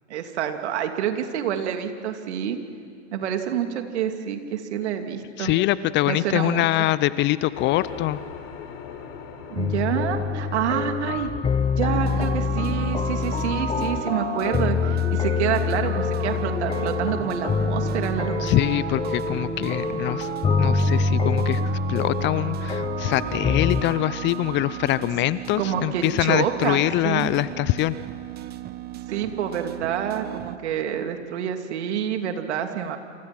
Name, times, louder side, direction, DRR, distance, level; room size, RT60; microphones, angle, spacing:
voice 1, 0.1-2.6 3.1-5.5 6.0-6.9 9.5-11.3 11.8-18.4 25.6-27.3 29.1-33.0, right 9 dB, 65° right, 6 dB, 2.8 m, -27 dB
voice 2, 5.4-8.2 18.4-20.3 20.6-28.0, left 16 dB, 30° left, 17 dB, 0.7 m, -24 dB
sound 1, 7.5-17.7, left 7 dB, 50° left, 4.2 m, -43 dB
sound 2, 9.6-23.8, left 5 dB, 15° left, 1.0 m, -26 dB
sound 3, 12.0-30.6, right 12 dB, 25° right, 1.1 m, -34 dB
28.5 x 28.0 x 6.1 m, 2.4 s
hypercardioid pair, 100°, 36 cm